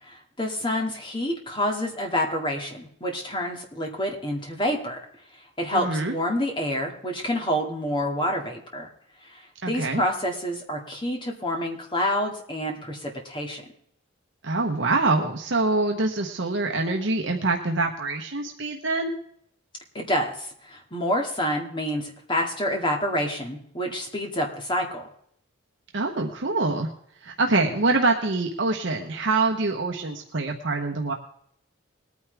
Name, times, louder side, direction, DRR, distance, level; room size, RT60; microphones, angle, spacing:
voice 1, 0.0-5.0 5.3-8.9 9.3-13.6 19.9-25.1, equal, 25° left, 1 dB, 2.3 m, -28 dB
voice 2, 5.7-6.1 9.6-10.0 14.4-19.1 25.9-26.9 27.2-31.1, right 3 dB, 60° right, 2 dB, 1.1 m, -25 dB
20.5 x 9.5 x 3.5 m, 0.68 s
head